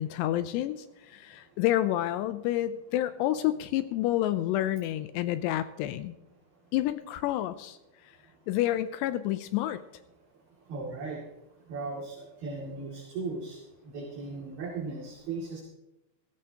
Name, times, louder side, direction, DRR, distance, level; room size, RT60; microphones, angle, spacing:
voice 1, 0.0-6.1 6.7-7.8 8.0-8.1 8.5-9.8, left 13 dB, 80° left, 12 dB, 2.6 m, -29 dB
voice 2, 10.6-11.3 11.6-15.6, right 3 dB, 60° right, -4 dB, 4.1 m, -37 dB
17.0 x 16.5 x 2.9 m, 0.92 s
omnidirectional pair, 5.2 m